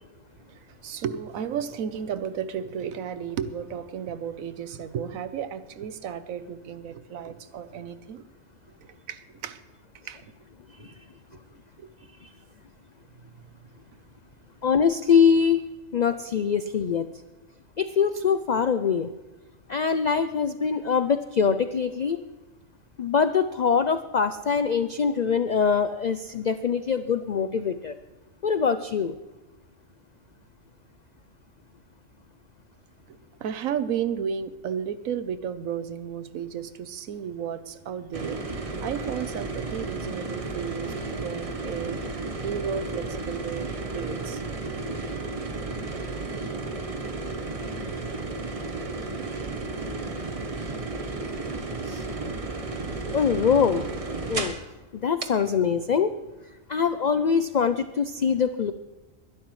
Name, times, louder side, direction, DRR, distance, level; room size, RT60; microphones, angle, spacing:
voice 1, 0.5-8.3 8.8-9.6 10.1-10.3 10.8-10.9 11.3-11.4 11.8-11.9 33.1-44.4, right 8 dB, 90° right, 1.2 m, -33 dB
voice 2, 14.6-15.6 15.9-17.1 17.8-19.1 19.7-22.2 23.0-28.0 28.4-29.1 51.9-52.0 53.1-53.8 54.3-54.5 54.9-56.1 56.7-58.7, left 6 dB, 75° left, 0.4 m, -23 dB
sound 1, 38.1-54.7 55.2-55.3, right 3 dB, 30° right, 1.0 m, -33 dB
21.5 x 11.5 x 3.2 m
omnidirectional pair, 1.4 m